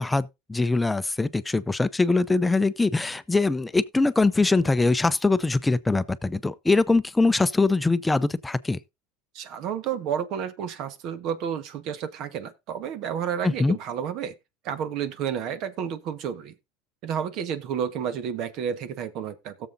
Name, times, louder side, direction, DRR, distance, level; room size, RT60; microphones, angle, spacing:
voice 1, 0.0-8.8 13.4-13.8, left 3 dB, 10° left, 0.6 m, -22 dB
voice 2, 9.3-14.3 14.6-16.5 17.0-19.7, right 8 dB, 55° right, 1.3 m, -31 dB
17.0 x 7.1 x 2.7 m
supercardioid pair, 115°, 0 cm